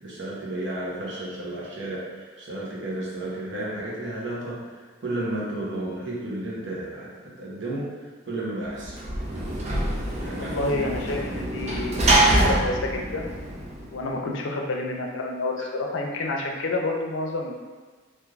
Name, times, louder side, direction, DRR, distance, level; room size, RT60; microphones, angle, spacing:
voice 1, 0.0-8.9 10.1-10.7 10.9-11.0, right 1 dB, 70° right, -5 dB, 0.8 m, -33 dB
Sliding door / Slam, 8.7-14.1, right 1 dB, 35° right, 0.5 m, -25 dB
voice 2, 10.4-13.3 13.9-17.6, left 2 dB, 85° left, 1 dB, 0.5 m, -29 dB
3.2 x 2.5 x 2.4 m, 1.4 s
head